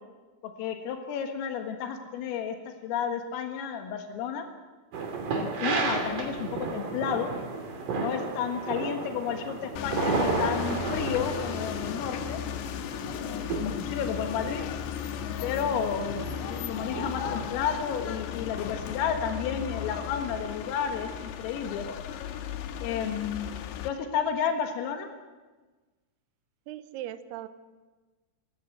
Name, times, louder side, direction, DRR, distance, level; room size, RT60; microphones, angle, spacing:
voice 1, 0.4-2.6 2.8-4.5 5.3-7.3 7.9-12.4 13.0-14.6 15.4-21.9 22.8-23.5 23.8-25.1, left 7 dB, 85° left, 5 dB, 4.3 m, -32 dB
sound 1, 4.9-18.1, right 4 dB, 45° right, 3.6 m, -34 dB
sound 2, 9.8-23.9, left 9 dB, 70° left, 2.9 m, -35 dB
voice 2, 26.7-27.5, right 12 dB, 85° right, 11 dB, 2.4 m, -38 dB
26.0 x 15.0 x 7.9 m, 1.3 s
omnidirectional pair, 5.8 m